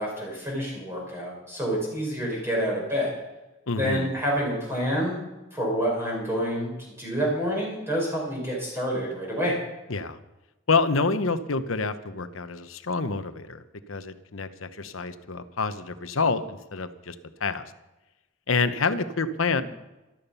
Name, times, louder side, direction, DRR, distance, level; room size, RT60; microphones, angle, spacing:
voice 1, 0.0-3.1 3.8-5.2 5.5-9.5 19.6-19.7, equal, 10° right, -3 dB, 5.0 m, -28 dB
voice 2, 3.7-4.1 9.9-10.2 10.7-13.6 13.9-17.1 17.4-17.6 18.5-19.6, left 4 dB, 85° left, 11 dB, 1.0 m, -27 dB
14.0 x 12.5 x 5.6 m, 1.0 s
head